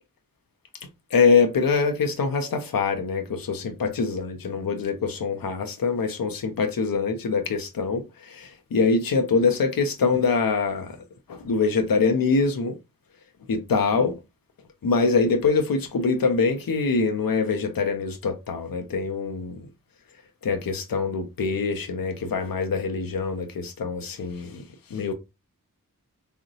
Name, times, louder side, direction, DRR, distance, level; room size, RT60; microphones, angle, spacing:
voice 1, 1.1-11.0 11.3-12.8 13.5-14.2 14.8-19.6 20.4-24.6 24.9-25.1, left 4 dB, 80° left, 0.5 m, -24 dB
3.7 x 2.1 x 2.6 m
wide cardioid pair, 40°, 34 cm